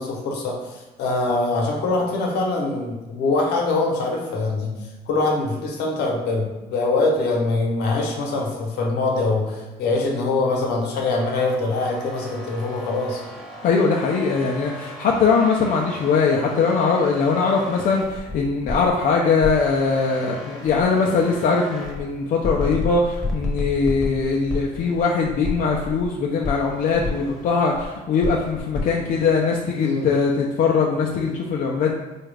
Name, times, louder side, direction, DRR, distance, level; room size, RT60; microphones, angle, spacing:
voice 1, 0.0-4.7 5.1-13.2 29.8-30.1, left 3 dB, 75° left, 0 dB, 0.9 m, -23 dB
sound 1, 11.1-18.9 19.4-22.0 22.4-26.1 26.4-27.9 28.2-30.3, left 2 dB, ahead, 1.0 m, -33 dB
voice 2, 13.6-31.9, left 4 dB, 55° left, -1 dB, 0.4 m, -21 dB
4.1 x 2.4 x 3.3 m, 1.1 s
cardioid pair, 110°, 17 cm